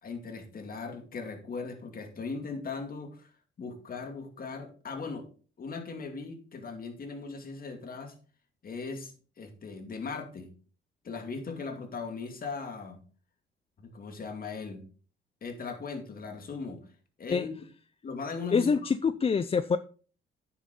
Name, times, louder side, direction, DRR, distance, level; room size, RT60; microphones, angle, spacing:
voice 1, 0.0-3.3 3.6-5.3 5.6-8.1 8.6-10.5 11.0-13.0 13.8-14.8 15.4-16.8 17.2-17.6 18.0-18.7, left 4 dB, 45° left, 5 dB, 2.4 m, -38 dB
voice 2, 18.5-19.8, left 5 dB, 30° left, 13 dB, 0.5 m, -25 dB
9.4 x 7.5 x 3.8 m, 0.39 s
cardioid pair, 90°, 20 cm